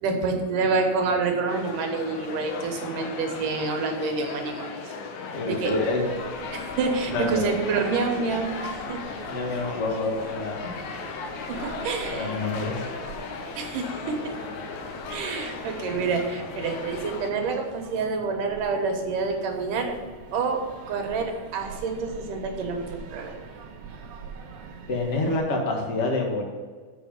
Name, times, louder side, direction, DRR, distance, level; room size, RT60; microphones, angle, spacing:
voice 1, 0.0-4.9 5.5-5.7 6.5-9.0 11.5-12.5 13.6-14.4 15.1-19.9 20.3-23.3, right 4 dB, 90° right, 3 dB, 2.8 m, -28 dB
sound 1, 1.5-17.3, left 4 dB, 70° left, 2.2 m, -36 dB
voice 2, 5.3-6.1 7.1-7.5 9.3-10.6 12.1-12.8 24.9-26.4, left 2 dB, 35° left, 0 dB, 1.2 m, -27 dB
sound 2, 5.6-25.4, right 4 dB, 65° right, 1.5 m, -45 dB
7.6 x 6.0 x 7.0 m, 1.5 s
omnidirectional pair, 3.6 m